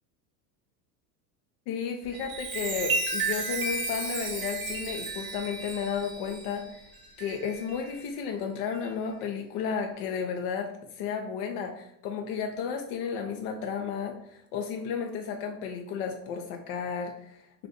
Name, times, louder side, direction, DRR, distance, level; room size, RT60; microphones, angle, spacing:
voice 1, 1.7-6.9 7.2-17.7, left 6 dB, 50° left, 3 dB, 0.4 m, -33 dB
Chime, 2.0-8.0 8.6-8.9, right 3 dB, 25° right, 0.6 m, -33 dB
2.6 x 2.2 x 3.8 m, 0.75 s
hypercardioid pair, 95°, 49 cm